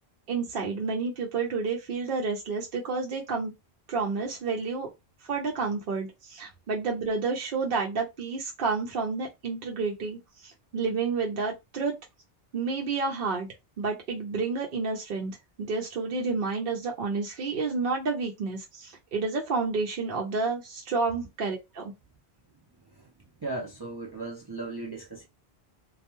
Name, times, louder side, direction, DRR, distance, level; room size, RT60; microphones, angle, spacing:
voice 1, 0.3-3.5 3.9-4.9 5.3-12.0 12.5-13.5 13.8-21.9, right 4 dB, 65° right, 0.8 m, -30 dB
voice 2, 23.4-25.3, right 2 dB, 35° right, 0.4 m, -36 dB
2.3 x 2.2 x 2.9 m
omnidirectional pair, 1.1 m